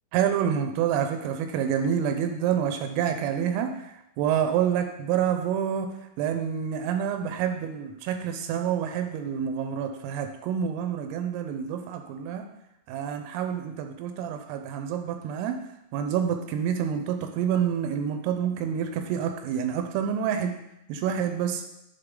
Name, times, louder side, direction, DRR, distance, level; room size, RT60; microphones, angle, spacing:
voice 1, 0.1-12.5 12.9-15.6 15.9-20.5 20.9-21.6, right 8 dB, 85° right, 6 dB, 3.2 m, -28 dB
10.0 x 4.2 x 3.7 m, 0.85 s
omnidirectional pair, 5.8 m